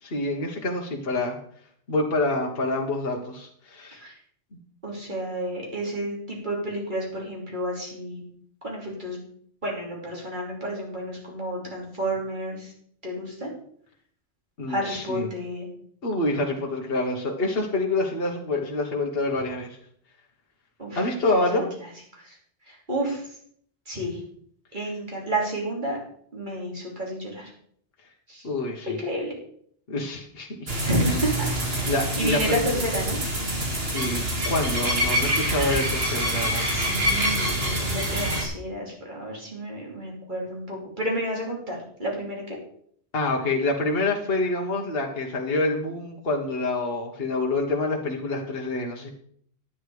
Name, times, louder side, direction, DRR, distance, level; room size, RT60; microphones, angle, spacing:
voice 1, 0.0-1.4 1.9-4.0 4.5-4.6 14.6-15.3 16.0-19.8 20.9-21.7 28.4-29.0 29.9-30.8 31.8-32.8 33.9-36.7 43.1-49.1, left 2 dB, 55° left, 0 dB, 1.5 m, -27 dB
voice 2, 4.8-8.2 8.6-9.2 9.6-12.7 13.0-13.5 14.7-15.7 20.8-21.0 21.5-21.6 22.3-22.4 22.7-23.2 23.9-24.2 24.7-26.0 26.3-27.5 28.3-28.5 28.9-29.3 30.8-33.2 36.6-42.4, right 1 dB, 45° right, -2 dB, 3.3 m, -30 dB
sound 1, 30.7-38.5, equal, 60° right, 2.5 m, -26 dB
10.0 x 8.8 x 4.8 m, 0.63 s
omnidirectional pair, 1.2 m